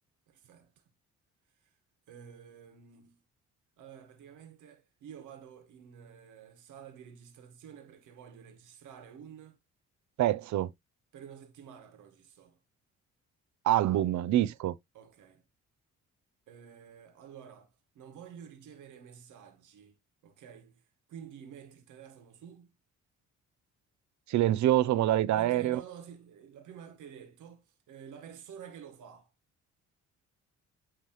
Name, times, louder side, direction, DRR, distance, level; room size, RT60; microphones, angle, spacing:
voice 1, 0.3-0.7 2.1-3.2 3.8-9.6 11.1-12.6 14.9-15.4 16.5-20.0 20.2-20.8 21.1-22.7 25.3-27.6 27.9-29.3, right 8 dB, 85° right, 1.7 m, -50 dB
voice 2, 10.2-10.7 13.6-14.8 24.3-25.8, right 13 dB, 70° right, 0.6 m, -26 dB
9.3 x 3.3 x 3.1 m
cardioid pair, 90°, 30 cm